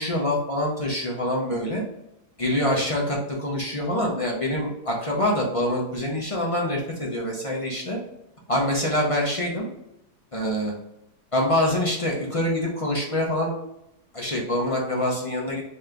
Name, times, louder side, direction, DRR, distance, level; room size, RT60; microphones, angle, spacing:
voice 1, 0.0-1.8 2.4-8.0 8.5-9.7 10.3-10.7 11.3-13.5 14.1-15.6, left 1 dB, 40° left, -2 dB, 0.4 m, -25 dB
4.2 x 3.3 x 3.7 m, 0.85 s
omnidirectional pair, 1.8 m